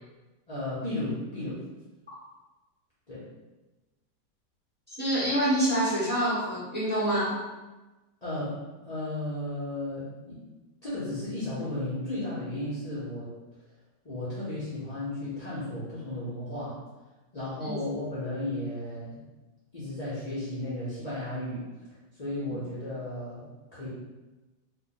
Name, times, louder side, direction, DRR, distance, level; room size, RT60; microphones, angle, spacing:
voice 1, 0.5-1.6 3.1-3.3 8.2-10.4 10.8-13.3 14.0-16.8 17.3-19.2 19.7-21.6 22.2-23.9, left 1 dB, 60° left, -10 dB, 0.4 m, -34 dB
voice 2, 5.0-7.4 17.6-17.8, right 1 dB, 5° right, -10 dB, 1.0 m, -26 dB
3.3 x 2.1 x 3.8 m, 1.1 s
omnidirectional pair, 2.1 m